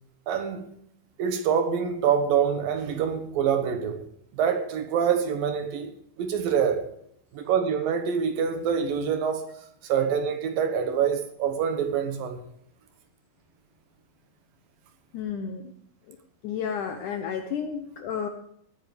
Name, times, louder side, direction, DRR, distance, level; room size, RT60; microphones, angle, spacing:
voice 1, 0.3-0.7 1.2-4.1 4.3-5.9 6.2-6.9 7.3-9.5 9.8-12.4, right 7 dB, 70° right, 7 dB, 2.8 m, -25 dB
voice 2, 15.1-15.7 16.1-16.2 16.4-18.3, left 7 dB, 75° left, 6 dB, 1.9 m, -32 dB
18.5 x 9.3 x 5.0 m, 0.71 s
omnidirectional pair, 4.6 m